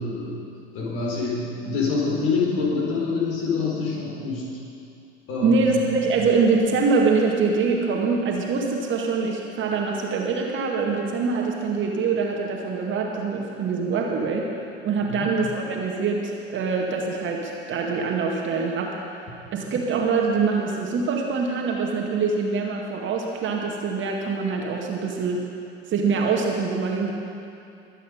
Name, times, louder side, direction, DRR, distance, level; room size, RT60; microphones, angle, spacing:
voice 1, 0.0-4.5 5.3-5.7 15.0-15.3, left 4 dB, 45° left, -2 dB, 4.3 m, -26 dB
voice 2, 5.4-14.5 14.8-19.0 19.5-25.5 25.9-27.1, right 4 dB, 35° right, 0 dB, 2.0 m, -24 dB
22.5 x 9.0 x 5.2 m, 2.6 s
figure-of-eight pair, 75°, 33 cm